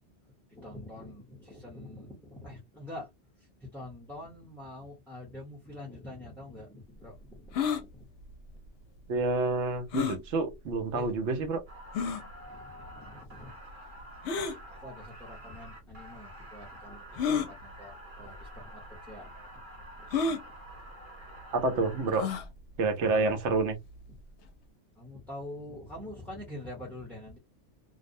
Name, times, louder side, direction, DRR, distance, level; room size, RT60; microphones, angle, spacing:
voice 1, 0.5-3.1 3.4-8.1 10.9-11.1 12.5-13.6 14.5-19.3 19.9-20.1 23.1-23.4 24.1-24.2 24.9-27.4, left 1 dB, ahead, 0.7 m, -45 dB
sound 1, 7.5-7.8 9.9-10.2 11.0-11.1 11.9-12.2 14.2-14.6 15.6-15.7 17.2-17.5 18.4-18.6 18.8-18.9 20.1-20.4 22.1-22.5, left 6 dB, 75° left, 0.9 m, -29 dB
voice 2, 9.1-11.6 21.5-22.3 22.8-23.8, right 3 dB, 75° right, 1.0 m, -28 dB
sound 2, 11.7-22.4, right 1 dB, 50° right, 1.0 m, -49 dB
2.5 x 2.1 x 2.6 m
omnidirectional pair, 1.2 m